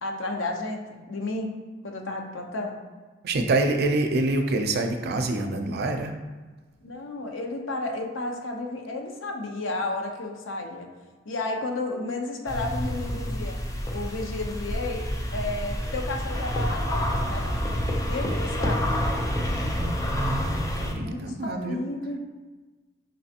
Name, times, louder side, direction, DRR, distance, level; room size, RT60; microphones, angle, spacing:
voice 1, 0.0-1.5 1.8-2.8 6.8-10.9 11.2-13.6 13.9-15.0 15.3-17.6 18.1-18.9 20.9-22.2, left 2 dB, 90° left, 2 dB, 0.7 m, -32 dB
voice 2, 3.2-6.1 19.6-21.8, right 2 dB, 55° right, 5 dB, 0.5 m, -26 dB
sound 1, 12.5-20.9, equal, 15° left, 0.5 m, -28 dB
5.5 x 3.3 x 2.8 m, 1.3 s
head